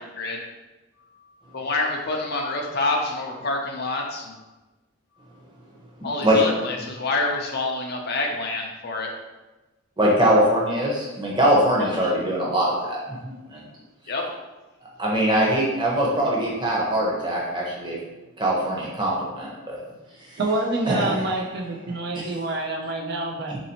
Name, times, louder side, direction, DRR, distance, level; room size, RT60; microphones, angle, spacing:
voice 1, 1.5-4.3 6.0-9.1 11.8-11.9 14.1-14.2, left 2 dB, 45° left, 1 dB, 0.5 m, -27 dB
voice 2, 10.0-13.6 15.0-18.0 18.4-19.8 20.3-20.4 20.9-21.3 22.1-22.2 23.5-23.6, right 1 dB, 20° right, -4 dB, 0.7 m, -22 dB
voice 3, 20.4-23.5, right 2 dB, 50° right, 0 dB, 0.4 m, -27 dB
4.0 x 2.7 x 2.8 m, 1.1 s
head